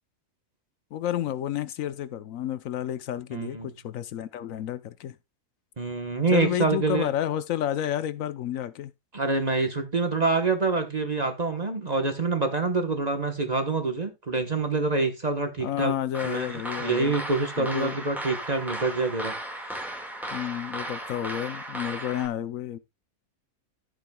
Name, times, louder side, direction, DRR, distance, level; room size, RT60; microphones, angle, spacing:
voice 1, 0.9-5.2 6.3-8.9 15.6-17.1 17.6-18.0 20.3-22.8, left 11 dB, 65° left, 1.0 m, -30 dB
voice 2, 3.3-3.7 5.8-7.1 9.1-15.9 16.2-19.3, right 3 dB, 30° right, 1.1 m, -26 dB
sound 1, 16.1-22.3, right 1 dB, ahead, 1.7 m, -36 dB
13.5 x 7.7 x 2.3 m
omnidirectional pair, 1.7 m